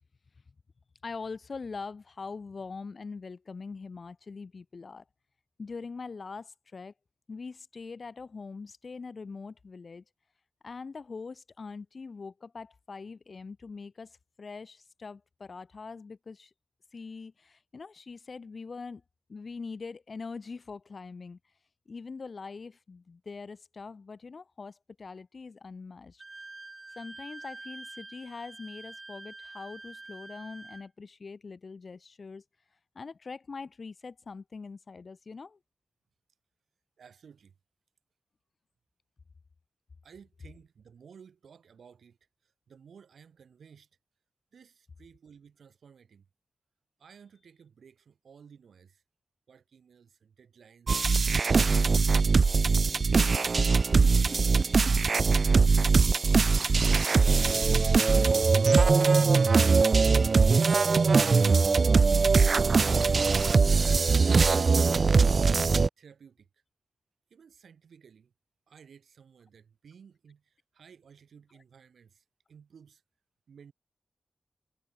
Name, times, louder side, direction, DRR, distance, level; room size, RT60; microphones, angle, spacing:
voice 1, 1.0-5.0 5.6-6.9 7.3-10.0 10.6-16.5 16.9-19.0 19.3-21.4 21.9-26.2 26.9-32.4 32.9-35.6, left 4 dB, 50° left, 6.5 m, -43 dB
Wind instrument woodwind instrument, 26.2-30.9, right 3 dB, 30° right, 7.9 m, -46 dB
voice 2, 37.0-37.6 40.0-43.9 44.5-46.3 47.0-49.0 49.5-51.0 54.1-56.5 64.3-66.6 67.3-68.3 68.7-73.0 73.5-73.7, right 7 dB, 85° right, 7.8 m, -56 dB
sound 1, 50.9-65.9, right 4 dB, 50° right, 0.3 m, -22 dB
wide cardioid pair, 90°, 0 cm